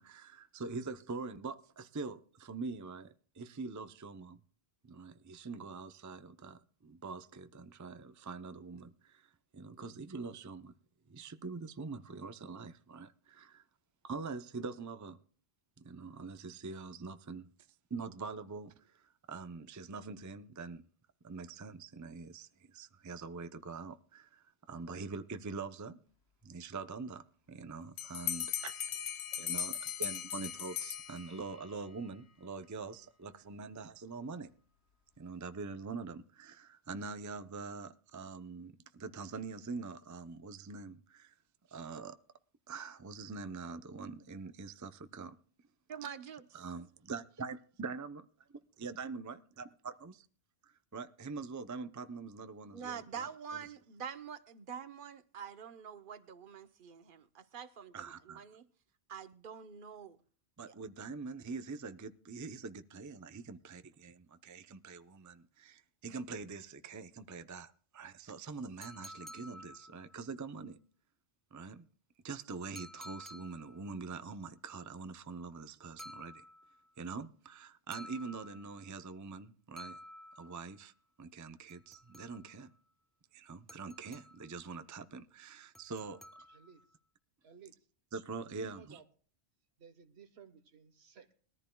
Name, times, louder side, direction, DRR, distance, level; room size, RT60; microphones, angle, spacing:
voice 1, 0.0-4.4 4.8-10.7 11.1-13.6 14.0-15.2 15.8-17.5 17.9-20.9 21.2-26.0 26.4-28.7 29.4-34.5 35.2-41.4 41.7-42.2 42.7-45.4 46.5-48.2 48.8-49.4 50.0-50.3 50.6-53.7 57.9-58.4 60.6-70.8 71.5-71.9 72.2-76.4 77.0-80.0 80.3-80.9 81.2-82.7 83.3-86.5 88.1-89.0, right 4 dB, 20° right, 0.5 m, -44 dB
Bell, 28.0-31.6, left 9 dB, 80° left, 1.0 m, -38 dB
voice 2, 45.9-46.5 52.7-57.9 58.4-58.6 59.1-60.2, right 7 dB, 55° right, 1.0 m, -45 dB
sound 1, 68.8-70.3 72.8-73.9 76.0-76.9 77.9-78.9 79.8-80.8 81.7-82.7 83.7-84.6 85.7-86.8, equal, ahead, 0.9 m, -52 dB
voice 3, 87.4-87.7 88.4-89.0 89.8-91.3, right 5 dB, 75° right, 1.4 m, -56 dB
21.0 x 14.0 x 2.3 m
omnidirectional pair, 1.1 m